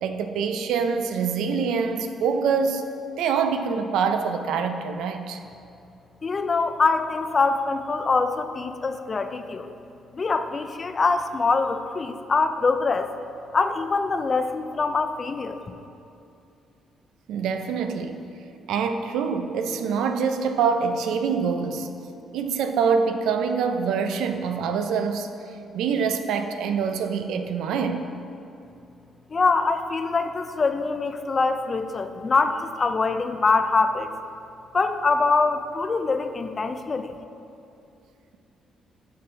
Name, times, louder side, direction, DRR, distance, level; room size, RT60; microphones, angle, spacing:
voice 1, 0.0-2.9 3.2-5.4 17.3-18.2 18.7-21.9 22.3-25.3 25.7-28.1, right 6 dB, 85° right, 7 dB, 0.4 m, -25 dB
voice 2, 6.2-9.7 10.1-13.1 13.5-15.7 29.3-34.1 34.7-37.2, left 4 dB, 35° left, 9 dB, 0.3 m, -24 dB
6.8 x 5.3 x 3.3 m, 2.7 s
cardioid pair, 90°, 0 cm